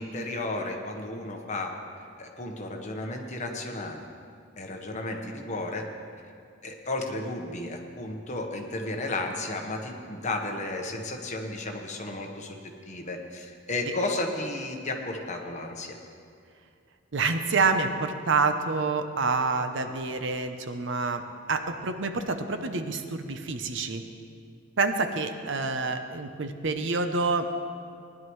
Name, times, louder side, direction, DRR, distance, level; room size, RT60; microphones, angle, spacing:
voice 1, 0.0-1.7 2.2-4.0 4.6-5.8 6.6-12.6 12.9-16.0, left 2 dB, 35° left, 2 dB, 1.1 m, -33 dB
voice 2, 17.1-21.2 21.5-24.0 24.8-27.4, right 4 dB, 65° right, 7 dB, 0.7 m, -27 dB
19.0 x 11.0 x 3.2 m, 2.3 s
head